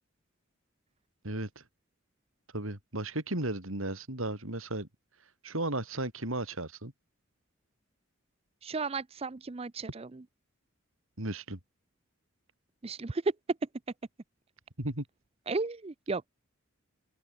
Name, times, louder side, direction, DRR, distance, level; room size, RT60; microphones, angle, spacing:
voice 1, 1.2-1.6 2.5-4.9 5.4-6.9 11.2-11.6 14.8-15.0, right 1 dB, 75° right, 4.8 m, -35 dB
voice 2, 8.6-10.1 12.8-13.2 15.5-16.3, right 4 dB, 30° right, 0.5 m, -34 dB
open air
head